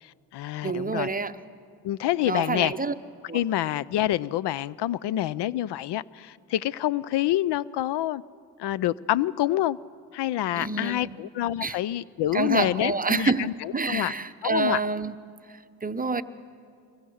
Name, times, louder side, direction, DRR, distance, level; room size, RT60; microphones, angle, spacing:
voice 1, 0.0-1.1 1.8-2.7 3.3-8.2 8.6-9.8 10.1-14.1 14.4-14.8, left 13 dB, 70° left, 21 dB, 0.5 m, -27 dB
voice 2, 0.6-1.4 2.2-2.9 3.3-3.4 10.5-11.3 11.6-11.8 12.3-15.1 15.5-16.2, right 4 dB, 20° right, 11 dB, 0.8 m, -28 dB
23.0 x 21.0 x 6.4 m, 2.3 s
cardioid pair, 70°, 43 cm